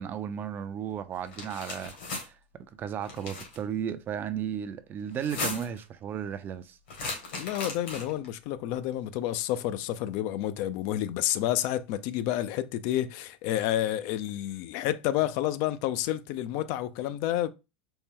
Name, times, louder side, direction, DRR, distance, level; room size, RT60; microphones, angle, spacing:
voice 1, 0.0-2.4 2.7-6.8, right 8 dB, 35° right, 0.5 m, -34 dB
sound 1, 1.2-2.2 3.0-3.6 5.1-5.8 6.9-8.2, left 3 dB, 80° left, 1.9 m, -36 dB
voice 2, 7.3-17.5, left 13 dB, 60° left, 0.4 m, -30 dB
4.3 x 2.1 x 3.6 m
hypercardioid pair, 105°, 6 cm